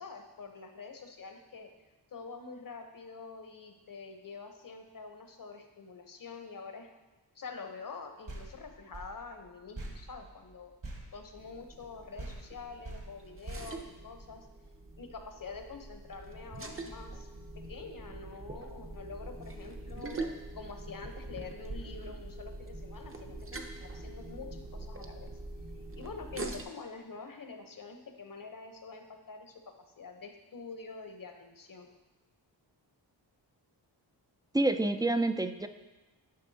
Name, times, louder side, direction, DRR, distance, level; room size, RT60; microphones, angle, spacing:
voice 1, 0.0-1.7 2.1-6.9 7.3-10.7 11.1-14.5 15.0-17.3 17.6-20.2 20.5-25.3 25.9-31.9, left 4 dB, 50° left, 5 dB, 1.0 m, -46 dB
sound 1, 8.3-11.9 12.2-14.6, right 2 dB, 50° right, 1.5 m, -46 dB
sound 2, 11.4-26.6, right 2 dB, 30° right, 0.7 m, -44 dB
voice 2, 34.5-35.7, right 2 dB, 10° right, 9 dB, 0.4 m, -28 dB
11.5 x 5.3 x 2.8 m, 1.2 s
wide cardioid pair, 75°, 42 cm